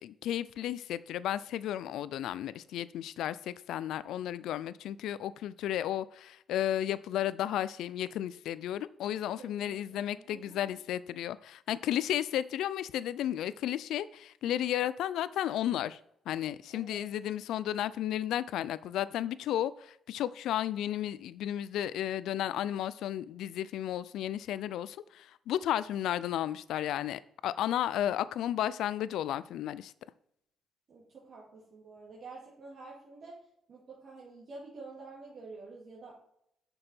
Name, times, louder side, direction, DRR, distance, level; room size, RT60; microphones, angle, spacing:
voice 1, 0.0-16.0 16.3-29.9, left 11 dB, 85° left, 17 dB, 0.3 m, -33 dB
voice 2, 9.4-10.6 16.7-17.1 30.9-33.4 33.7-36.1, right 3 dB, 55° right, -5 dB, 2.2 m, -49 dB
6.7 x 5.4 x 4.3 m, 0.72 s
cardioid pair, 90°, 0 cm